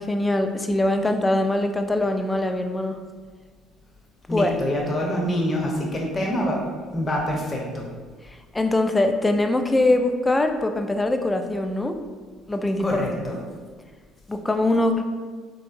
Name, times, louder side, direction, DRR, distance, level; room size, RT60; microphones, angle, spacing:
voice 1, 0.0-3.0 4.3-4.6 8.3-11.9 12.5-13.0 14.3-15.0, left 2 dB, 15° left, 6 dB, 0.3 m, -22 dB
voice 2, 4.3-6.6 6.9-7.8 12.8-13.4, left 1 dB, 35° left, -1 dB, 0.9 m, -25 dB
3.6 x 2.7 x 2.5 m, 1.5 s
hypercardioid pair, 70°, 0 cm